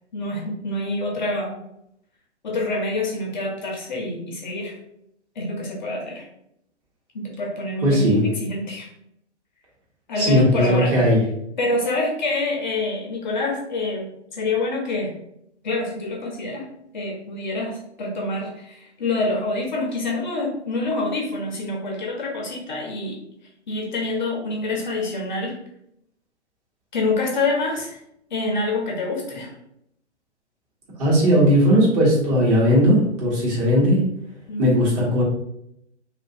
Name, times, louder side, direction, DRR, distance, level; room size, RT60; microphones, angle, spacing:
voice 1, 0.1-1.6 2.4-4.7 5.4-6.3 7.1-8.9 10.1-11.0 11.6-14.1 14.3-15.1 15.6-16.7 16.9-23.2 23.7-25.6 26.9-28.0 28.3-29.5 34.5-34.9, left 2 dB, 40° left, 0 dB, 0.6 m, -26 dB
voice 2, 7.8-8.2 10.2-11.2 31.0-34.0 34.6-35.2, equal, 35° right, -5 dB, 1.2 m, -17 dB
2.7 x 2.5 x 2.6 m, 0.76 s
figure-of-eight pair, 135°, 35 cm